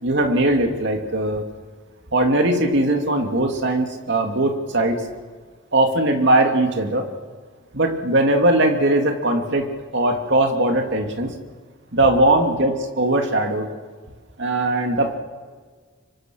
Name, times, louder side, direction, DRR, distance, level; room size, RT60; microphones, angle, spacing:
voice 1, 0.0-1.4 2.1-5.0 5.7-7.0 7.7-9.6 9.9-11.3 11.9-13.7 14.4-15.2, right 1 dB, 60° right, 3 dB, 2.8 m, -19 dB
29.5 x 25.0 x 6.5 m, 1.6 s
head